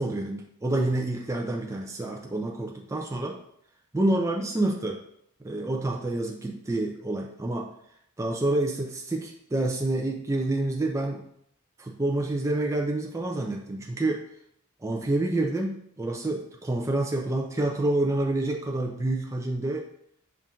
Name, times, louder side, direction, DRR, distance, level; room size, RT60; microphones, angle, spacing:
voice 1, 0.0-3.4 3.9-5.0 5.4-7.7 8.2-11.3 11.8-14.2 14.8-19.8, right 2 dB, 15° right, 0 dB, 0.4 m, -28 dB
5.6 x 2.5 x 3.7 m, 0.71 s
head